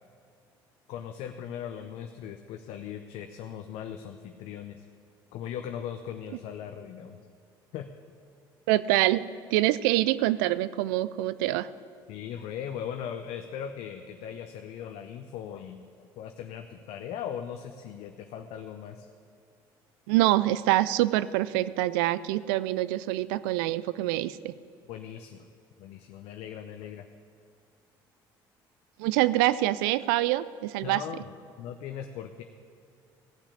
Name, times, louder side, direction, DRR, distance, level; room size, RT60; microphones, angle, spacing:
voice 1, 0.9-4.8 5.3-7.2 7.7-7.9 12.1-15.9 16.2-19.1 24.9-25.5 25.8-27.1 30.8-32.4, left 9 dB, 70° left, 6 dB, 0.7 m, -39 dB
voice 2, 8.7-9.2 9.5-11.7 20.1-24.5 29.0-31.0, right 16 dB, 80° right, 17 dB, 0.4 m, -25 dB
15.5 x 5.8 x 8.2 m, 2.3 s
hypercardioid pair, 60°, 11 cm